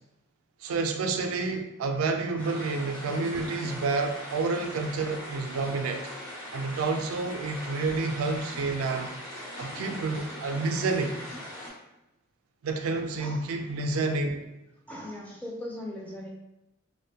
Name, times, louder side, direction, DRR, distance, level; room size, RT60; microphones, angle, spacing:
voice 1, 0.6-6.0 6.5-9.2 9.6-11.2 12.6-14.5, right 3 dB, 85° right, 5 dB, 0.3 m, -29 dB
sound 1, 2.4-11.7, left 1 dB, 70° left, 1.0 m, -40 dB
voice 2, 14.9-16.3, left 1 dB, 5° left, -2 dB, 0.3 m, -39 dB
2.5 x 2.1 x 2.7 m, 0.92 s
head